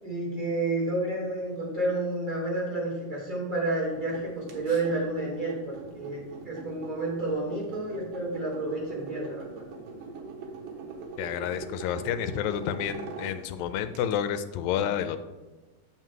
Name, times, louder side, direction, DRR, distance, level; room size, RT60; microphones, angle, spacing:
voice 1, 0.0-9.7, right 2 dB, 15° right, -5 dB, 2.5 m, -30 dB
sound 1, 3.8-14.2, right 4 dB, 75° right, 2.7 m, -42 dB
voice 2, 11.2-15.2, left 9 dB, 85° left, 10 dB, 2.3 m, -30 dB
7.5 x 5.8 x 4.6 m, 1.2 s
omnidirectional pair, 4.0 m